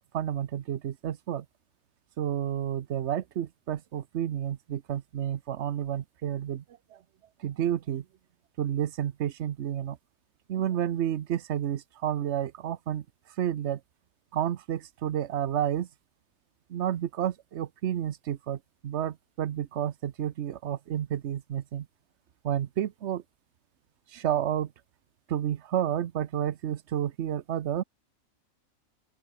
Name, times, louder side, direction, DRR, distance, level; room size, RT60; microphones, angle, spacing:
voice 1, 0.1-1.5 2.2-6.6 6.9-7.0 7.4-8.0 8.6-10.0 10.5-13.0 13.4-13.8 14.3-15.9 16.7-21.9 22.4-23.2 24.1-24.7 25.3-27.8, right 10 dB, 60° right, 1.0 m, -30 dB
open air
omnidirectional pair, 1.4 m